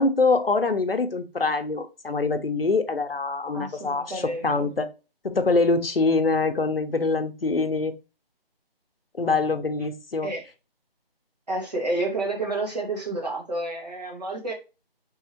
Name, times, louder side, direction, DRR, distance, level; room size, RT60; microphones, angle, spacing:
voice 1, 0.0-4.9 5.2-7.9 9.2-10.3, left 3 dB, 65° left, 8 dB, 0.8 m, -24 dB
voice 2, 3.5-4.7 10.2-10.4 11.5-14.5, right 2 dB, 40° right, -2 dB, 1.9 m, -30 dB
4.6 x 3.5 x 3.0 m, 0.30 s
figure-of-eight pair, 180°, 31 cm